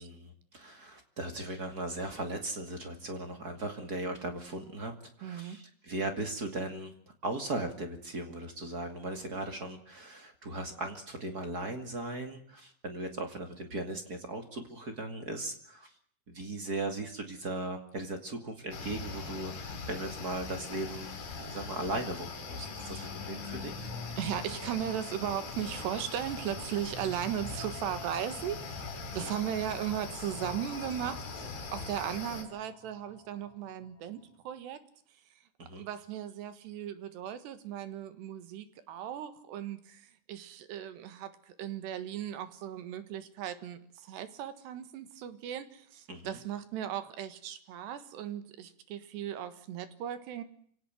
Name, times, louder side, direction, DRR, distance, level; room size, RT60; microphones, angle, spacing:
voice 1, 0.0-4.9 5.2-6.9 7.2-15.9 16.3-23.9 29.1-29.4 35.6-35.9 46.1-46.4, right 2 dB, 30° right, 6 dB, 2.1 m, -38 dB
voice 2, 5.2-5.6 22.9-23.1 24.2-34.8 35.7-50.4, right 10 dB, 80° right, 12 dB, 3.7 m, -37 dB
sound 1, 18.7-32.4, left 4 dB, 70° left, 5.6 m, -41 dB
sound 2, 22.3-34.1, left 4 dB, 55° left, 2.5 m, -48 dB
26.0 x 17.5 x 7.7 m, 0.62 s
omnidirectional pair, 4.8 m